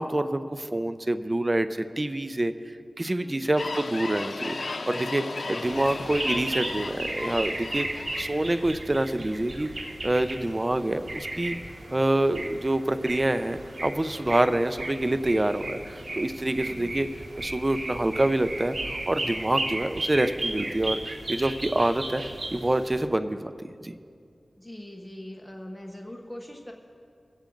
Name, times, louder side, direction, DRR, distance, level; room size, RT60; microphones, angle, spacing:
voice 1, 0.0-1.7 2.0-2.5 3.0-7.9 8.2-9.7 10.0-11.6 11.9-17.1 17.4-22.2 22.5-23.5 23.8-23.9, right 1 dB, 35° right, 10 dB, 0.6 m, -26 dB
sound 1, 3.5-8.7, left 3 dB, 75° left, 0.6 m, -35 dB
sound 2, 5.6-23.1, right 2 dB, 60° right, 1.2 m, -35 dB
voice 2, 16.5-16.9 24.6-26.7, left 1 dB, 10° left, 1 dB, 1.1 m, -42 dB
22.5 x 8.4 x 3.9 m, 2.3 s
cardioid pair, 45°, 0 cm